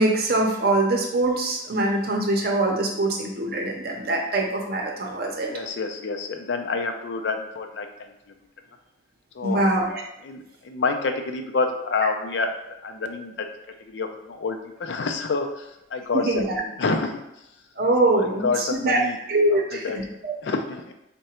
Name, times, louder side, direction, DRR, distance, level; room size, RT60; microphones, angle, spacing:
voice 1, 0.0-5.5 9.4-10.0 16.1-16.6 17.8-19.0 19.3-20.3, right 2 dB, 55° right, 1 dB, 0.6 m, -23 dB
voice 2, 5.5-8.1 9.3-9.6 10.2-12.6 12.8-13.5 13.8-17.2 18.1-19.2 19.5-20.0 20.4-20.9, left 4 dB, 70° left, 5 dB, 0.4 m, -28 dB
3.7 x 2.2 x 4.3 m, 0.86 s
head